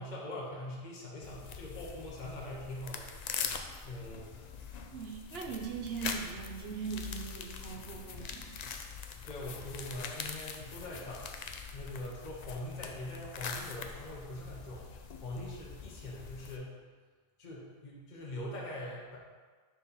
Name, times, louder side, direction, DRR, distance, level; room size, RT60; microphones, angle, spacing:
voice 1, 0.0-3.6 3.8-4.5 9.2-11.3 11.7-14.9 15.2-16.8 17.4-19.2, left 1 dB, 40° left, -4 dB, 1.1 m, -43 dB
sound 1, 1.2-16.6, left 6 dB, 60° left, 0.4 m, -43 dB
voice 2, 4.9-8.5, right 6 dB, 60° right, 2 dB, 0.9 m, -40 dB
4.5 x 4.3 x 5.5 m, 1.4 s
omnidirectional pair, 1.2 m